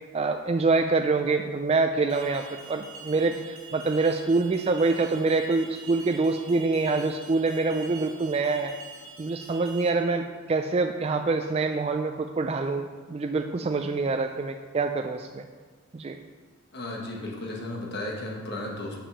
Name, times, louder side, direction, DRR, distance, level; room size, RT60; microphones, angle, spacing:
voice 1, 0.1-8.7 9.2-15.4 15.9-16.2, right 3 dB, 30° right, 5 dB, 0.3 m, -26 dB
Alarm, 2.1-9.9, right 5 dB, 75° right, 1.6 m, -46 dB
voice 2, 16.7-19.0, left 1 dB, 50° left, -1 dB, 1.3 m, -34 dB
7.1 x 5.7 x 6.8 m, 1.5 s
head